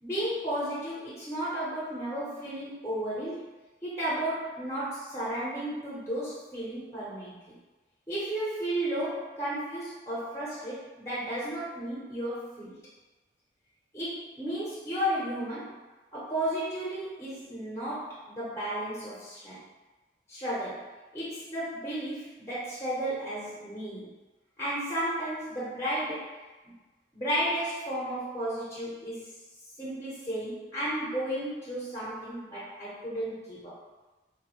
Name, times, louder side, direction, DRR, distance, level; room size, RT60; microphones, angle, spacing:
voice 1, 0.0-3.5 3.8-7.5 8.1-12.8 13.9-15.8 16.1-19.6 20.3-24.1 24.6-26.4 27.1-29.3 29.8-33.8, right 1 dB, 15° left, -9 dB, 0.7 m, -33 dB
2.6 x 2.0 x 2.9 m, 1.2 s
head